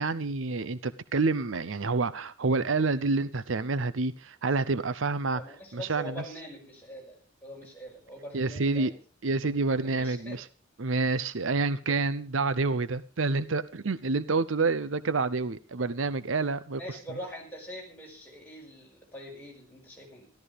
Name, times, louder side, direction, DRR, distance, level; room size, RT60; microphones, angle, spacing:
voice 1, 0.0-5.4 5.7-6.2 8.3-8.9 9.2-10.5 10.8-16.8, right 3 dB, 80° right, 0.7 m, -28 dB
voice 2, 5.3-9.0 9.8-10.4 16.8-20.3, equal, 10° left, 5.5 m, -43 dB
14.0 x 13.0 x 5.1 m
head